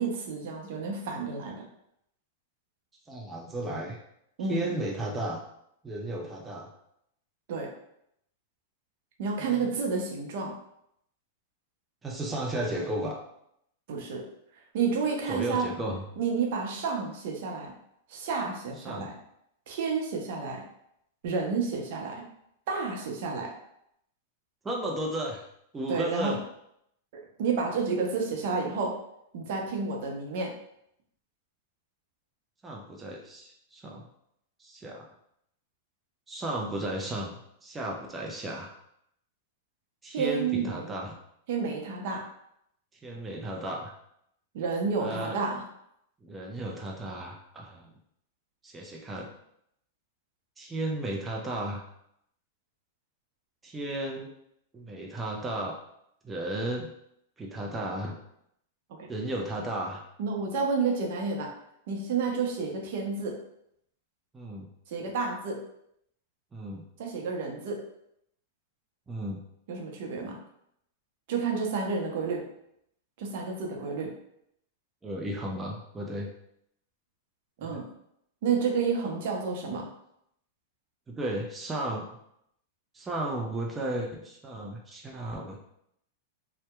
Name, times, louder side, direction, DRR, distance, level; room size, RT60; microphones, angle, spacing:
voice 1, 0.0-1.6 4.4-4.8 7.5-7.7 9.2-10.5 13.9-14.2 14.7-15.7 16.2-17.7 18.1-19.1 19.7-20.6 21.2-22.2 22.7-23.5 25.9-26.4 27.4-28.9 29.3-30.5 40.1-40.9 41.5-42.2 44.5-45.6 58.9-59.1 60.2-61.5 61.9-63.4 64.9-65.6 67.0-67.8 69.7-70.4 71.3-72.4 73.2-74.1 77.6-77.8 78.4-79.9, right 5 dB, 60° right, 0 dB, 0.6 m, -30 dB
voice 2, 3.1-4.0 4.4-5.4 5.8-6.7 9.4-9.7 12.0-13.2 15.3-16.0 18.8-19.1 24.6-25.4 25.7-26.4 32.6-34.0 34.6-35.1 36.3-38.7 40.0-41.2 43.0-43.9 45.0-45.4 46.2-47.9 48.6-49.3 50.6-51.8 53.6-54.3 54.7-55.8 56.2-56.9 57.4-58.2 59.1-60.0 64.3-64.7 66.5-66.8 69.1-69.4 75.0-76.3 77.6-77.8 81.1-82.2 82.9-85.6, right 1 dB, 15° right, -1 dB, 0.4 m, -34 dB
2.7 x 2.1 x 2.2 m, 0.75 s
hypercardioid pair, 115°, 0 cm